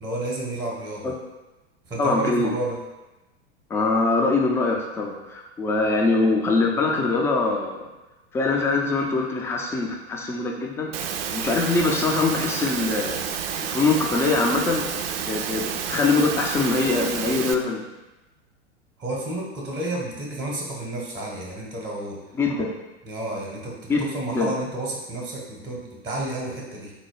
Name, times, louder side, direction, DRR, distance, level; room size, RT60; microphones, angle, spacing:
voice 1, 0.0-1.1 1.9-2.8 19.0-22.3 23.0-26.9, right 1 dB, 10° right, -1 dB, 0.8 m, -31 dB
voice 2, 2.0-2.6 3.7-7.9 8.3-10.9 11.3-13.3 13.6-14.9 15.2-17.8 22.3-22.7 23.9-24.5, left 3 dB, 10° left, 0 dB, 0.3 m, -23 dB
Engine / Mechanisms, 10.9-17.5, right 7 dB, 60° right, 0.4 m, -30 dB
4.0 x 2.2 x 4.6 m, 1.0 s
figure-of-eight pair, 90°, 34 cm